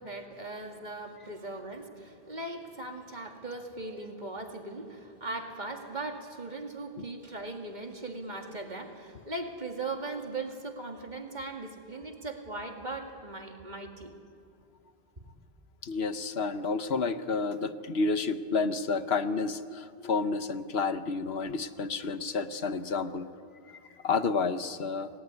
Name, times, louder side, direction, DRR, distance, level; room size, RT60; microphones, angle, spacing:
voice 1, 0.0-14.1, right 2 dB, 45° right, 3 dB, 2.5 m, -39 dB
voice 2, 15.8-23.3 23.7-25.1, left 4 dB, 80° left, 11 dB, 1.2 m, -30 dB
28.0 x 19.0 x 9.7 m, 2.4 s
omnidirectional pair, 1.0 m